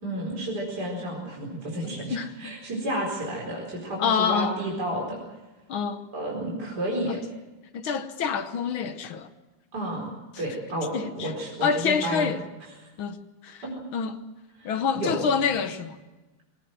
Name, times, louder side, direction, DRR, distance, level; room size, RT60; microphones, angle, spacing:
voice 1, 0.0-5.2 6.1-7.2 9.7-10.1 10.4-12.3 13.6-13.7 14.6-15.2, right 1 dB, 50° right, 5.0 m, -31 dB
voice 2, 2.1-2.5 4.0-4.6 5.7-6.1 7.1-7.2 7.7-9.3 10.3-10.4 10.9-11.3 11.6-12.4 13.0-13.6 13.9-14.2 14.7-16.0, left 6 dB, 70° left, 1.9 m, -27 dB
23.5 x 18.5 x 7.7 m
omnidirectional pair, 2.3 m